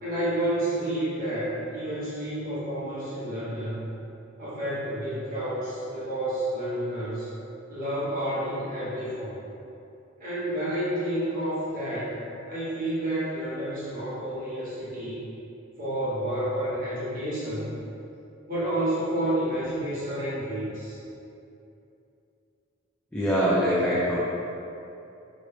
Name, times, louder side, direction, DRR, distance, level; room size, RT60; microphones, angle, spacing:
voice 1, 0.0-3.9 4.4-7.3 7.7-9.4 10.2-12.2 12.5-15.3 15.8-17.7 18.5-21.0, right 1 dB, 45° right, -11 dB, 1.2 m, -30 dB
voice 2, 23.1-24.2, equal, 5° left, -9 dB, 0.3 m, -23 dB
3.0 x 2.5 x 3.2 m, 2.8 s
head